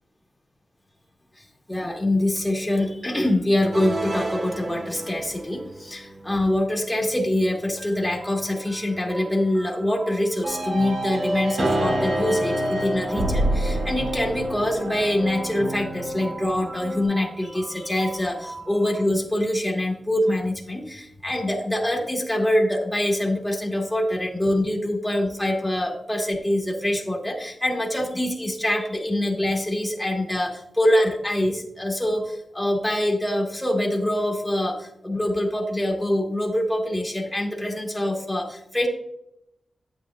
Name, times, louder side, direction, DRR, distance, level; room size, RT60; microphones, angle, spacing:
voice 1, 1.7-38.9, left 1 dB, 5° left, 0 dB, 1.4 m, -24 dB
sound 1, 3.7-19.1, right 2 dB, 35° right, 1.1 m, -39 dB
sound 2, 10.4-17.0, right 1 dB, 80° right, 2.4 m, -27 dB
8.7 x 8.4 x 2.3 m, 0.79 s
wide cardioid pair, 115°, 0 cm